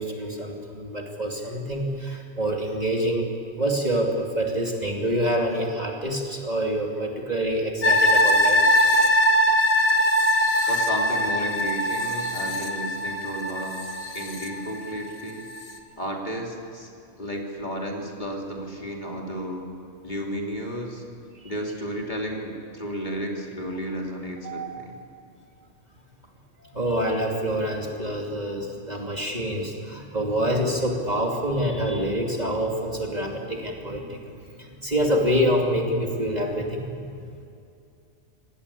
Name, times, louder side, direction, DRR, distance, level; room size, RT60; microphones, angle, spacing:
voice 1, 0.0-8.8 10.5-10.8 21.3-21.4 24.4-24.8 26.6-34.2 34.6-36.9, equal, 30° right, 0 dB, 2.8 m, -26 dB
sound 1, 7.8-15.1 15.5-15.6, left 1 dB, 85° left, 2.4 m, -22 dB
voice 2, 10.7-13.8 14.1-15.5 16.0-16.9 17.2-19.6 20.0-21.0 21.4-24.9, equal, 35° left, 0 dB, 3.3 m, -33 dB
27.0 x 19.0 x 8.4 m, 2.5 s
omnidirectional pair, 1.4 m